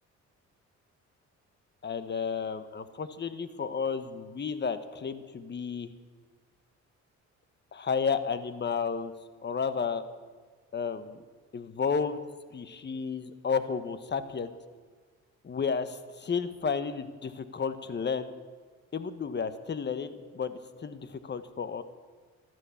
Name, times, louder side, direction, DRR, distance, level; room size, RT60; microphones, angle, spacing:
voice 1, 1.8-5.9 7.7-9.1 9.4-10.0 10.7-11.2 11.5-12.2 12.5-14.5 15.4-18.3 18.9-21.8, left 6 dB, 35° left, 12 dB, 1.2 m, -32 dB
13.5 x 12.5 x 7.2 m, 1.5 s
cardioid pair, 90°, 30 cm